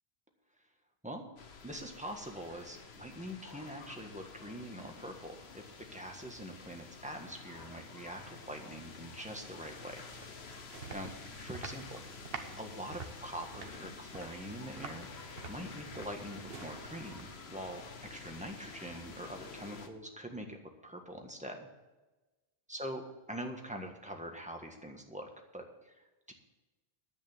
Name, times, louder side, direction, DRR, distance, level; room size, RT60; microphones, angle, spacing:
sound 1, 1.4-19.9, left 4 dB, 85° left, 1.3 m, -49 dB
voice 1, 1.6-10.0 10.9-12.0 12.3-21.7 22.7-23.0 23.3-26.3, equal, 5° right, 2 dB, 1.5 m, -44 dB
sound 2, 9.8-17.6, right 5 dB, 70° right, 1.2 m, -49 dB
10.0 x 8.7 x 7.3 m, 1.1 s
omnidirectional pair, 1.1 m